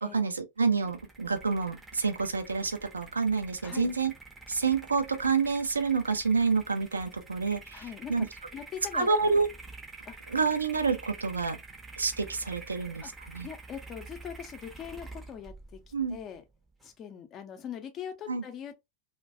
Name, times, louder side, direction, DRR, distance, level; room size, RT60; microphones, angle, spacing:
voice 1, 0.0-4.1 4.5-7.8 8.1-8.3 8.9-9.5 10.3-11.6 12.0-13.5 15.9-16.2 18.3-18.4, right 4 dB, 75° right, 0.4 m, -28 dB
sound 1, 0.7-16.9, right 3 dB, 10° right, 0.6 m, -48 dB
voice 2, 3.6-3.9 7.7-8.3 8.5-9.1 10.0-10.2 13.0-13.1 13.4-15.8 16.1-16.4 16.8-18.8, left 8 dB, 30° left, 0.5 m, -41 dB
2.2 x 2.2 x 2.5 m
figure-of-eight pair, 90°, 0 cm